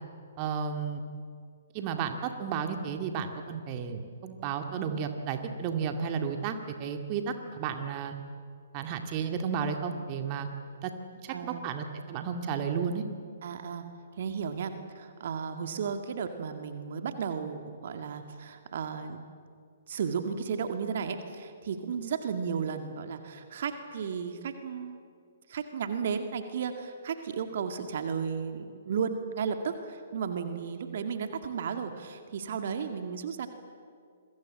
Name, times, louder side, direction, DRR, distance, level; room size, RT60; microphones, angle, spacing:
voice 1, 0.4-1.0 1.7-6.5 6.8-8.1 8.7-10.5 10.8-10.9 11.2-13.0, right 6 dB, 35° right, 6 dB, 2.1 m, -33 dB
voice 2, 11.3-11.6 13.4-13.8 14.2-19.2 19.9-25.0 25.5-33.5, right 6 dB, 50° right, 7 dB, 2.1 m, -34 dB
28.0 x 22.5 x 7.6 m, 2.2 s
figure-of-eight pair, 120°, 0 cm